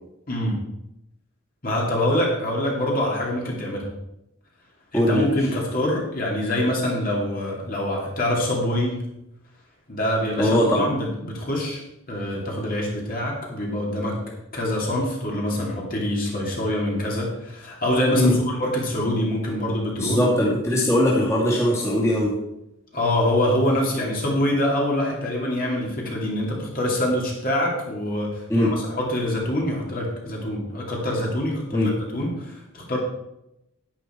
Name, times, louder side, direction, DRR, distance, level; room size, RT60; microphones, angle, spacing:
voice 1, 0.3-0.6 1.6-3.9 4.9-9.0 9.9-11.8 12.1-14.2 14.5-20.2 22.9-33.0, left 1 dB, 40° left, -2 dB, 2.7 m, -25 dB
voice 2, 4.9-5.5 10.4-10.8 18.1-18.4 20.0-22.4 28.5-28.8 31.7-32.0, left 1 dB, 15° left, -5 dB, 2.4 m, -20 dB
10.5 x 10.0 x 4.5 m, 0.86 s
head